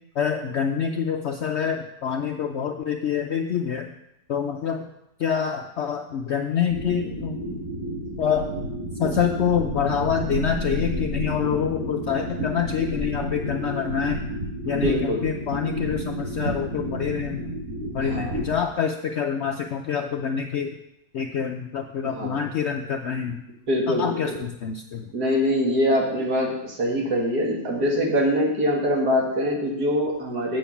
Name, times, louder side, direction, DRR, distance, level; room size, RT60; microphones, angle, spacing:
voice 1, 0.2-3.9 4.3-4.9 5.2-7.6 8.2-8.5 9.0-14.2 14.6-17.5 17.9-20.8 21.1-23.4 23.9-25.1, left 7 dB, 80° left, 4 dB, 0.6 m, -26 dB
sound 1, 6.7-18.6, right 1 dB, 45° right, 4.3 m, -31 dB
voice 2, 14.7-15.2 18.0-18.4 22.0-22.5 23.7-24.4 25.1-30.6, equal, 65° right, -1 dB, 2.2 m, -24 dB
7.7 x 7.0 x 5.7 m, 0.86 s
omnidirectional pair, 1.8 m